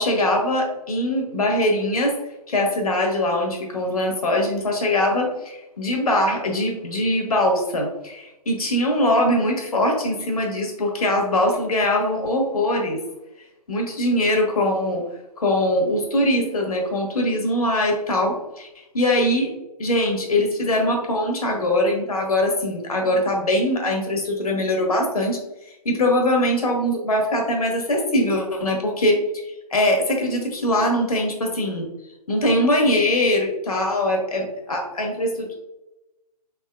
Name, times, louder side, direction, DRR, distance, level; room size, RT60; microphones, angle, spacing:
voice 1, 0.0-2.1 2.5-13.0 13.7-15.0 15.4-19.5 19.8-25.4 25.8-29.2 29.7-31.9 32.3-35.6, left 1 dB, 65° left, 1 dB, 1.2 m, -22 dB
4.0 x 3.6 x 2.3 m, 0.97 s
figure-of-eight pair, 140°, 20 cm